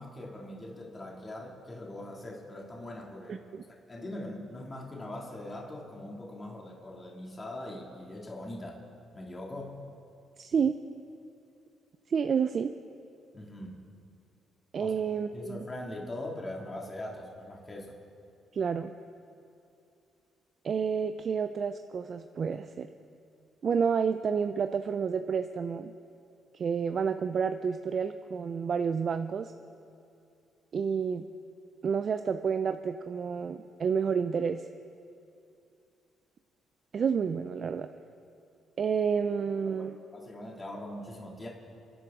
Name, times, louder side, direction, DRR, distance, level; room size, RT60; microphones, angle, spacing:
voice 1, 0.0-3.5 3.9-8.8 9.1-9.8 13.3-13.8 14.8-15.0 15.3-17.9 39.7-41.5, left 1 dB, 25° left, -2 dB, 2.4 m, -41 dB
voice 2, 3.3-3.6 10.4-10.8 12.1-12.7 14.7-15.7 18.5-18.9 20.6-22.9 23.6-25.9 26.5-29.5 30.7-31.3 31.8-34.6 36.9-37.9 38.8-40.0, right 6 dB, 50° right, 8 dB, 0.5 m, -30 dB
30.0 x 10.0 x 3.7 m, 2.6 s
cardioid pair, 90°, 0 cm